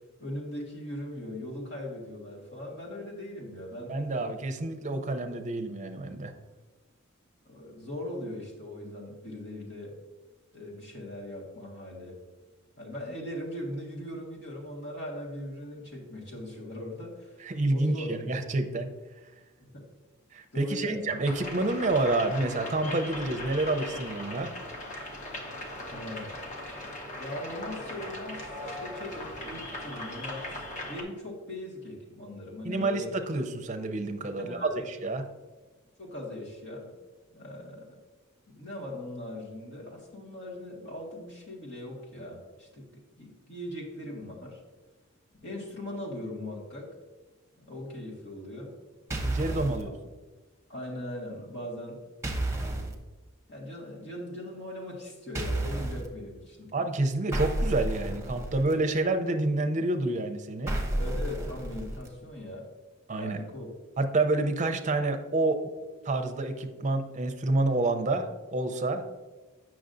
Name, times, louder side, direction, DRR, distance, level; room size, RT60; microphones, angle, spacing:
voice 1, 0.2-4.3 7.5-10.0 10.5-12.2 12.8-17.4 17.7-18.2 19.6-19.9 20.5-21.1 25.8-26.4 27.2-33.1 34.4-34.8 36.0-37.0 37.3-38.0 38.5-44.6 45.4-46.9 47.6-48.8 49.7-49.9 50.7-52.0 53.5-56.7 60.9-62.7 63.2-63.7, left 1 dB, 60° left, -2 dB, 1.7 m, -40 dB
voice 2, 3.9-6.3 17.4-18.9 20.3-24.5 32.6-35.2 49.2-49.9 56.7-60.8 63.1-63.4 64.0-65.6 66.0-69.0, right 2 dB, 35° right, 6 dB, 0.6 m, -28 dB
sound 1, 21.2-31.0, left 1 dB, 35° left, 1.1 m, -39 dB
sound 2, 49.1-49.8 52.2-52.9 55.3-56.1 57.3-58.7 60.7-62.1, right 1 dB, 15° right, 0.9 m, -31 dB
8.2 x 6.1 x 2.6 m, 1.2 s
head